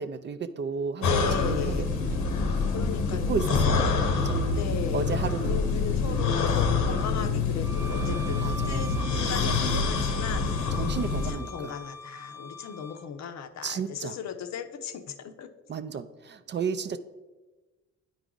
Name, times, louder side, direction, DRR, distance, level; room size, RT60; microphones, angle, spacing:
voice 1, 0.0-2.6 3.3-4.7 4.9-5.6 6.0-6.4 8.4-9.0 9.3-10.0 10.7-11.7 13.6-14.2 15.7-17.0, right 6 dB, 35° right, 11 dB, 0.4 m, -34 dB
sound 1, 1.0-11.3, left 4 dB, 90° left, 1.0 m, -26 dB
voice 2, 1.0-1.9 2.7-3.8 4.5-5.1 5.5-15.5, left 7 dB, 65° left, 9 dB, 0.7 m, -37 dB
Bowed string instrument, 7.6-13.0, right 1 dB, 10° left, 0.7 m, -42 dB
9.1 x 4.7 x 3.8 m, 1.2 s
cardioid pair, 90°, 30 cm